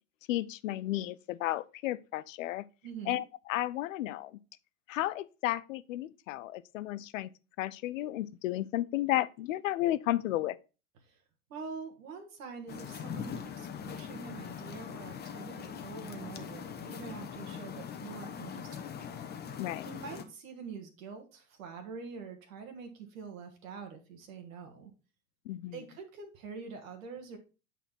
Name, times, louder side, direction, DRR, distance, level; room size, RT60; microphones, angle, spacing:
voice 1, 0.3-2.6 3.1-4.3 4.9-7.3 7.6-10.6 19.6-19.9 25.5-25.7, left 15 dB, 65° left, 0.6 m, -33 dB
voice 2, 2.8-3.2 11.0-11.2 11.5-19.0 19.8-24.9 25.7-27.4, right 5 dB, 65° right, 1.6 m, -45 dB
sound 1, 12.7-20.2, left 7 dB, 25° left, 0.9 m, -42 dB
8.2 x 4.1 x 4.3 m
figure-of-eight pair, 80°, 43 cm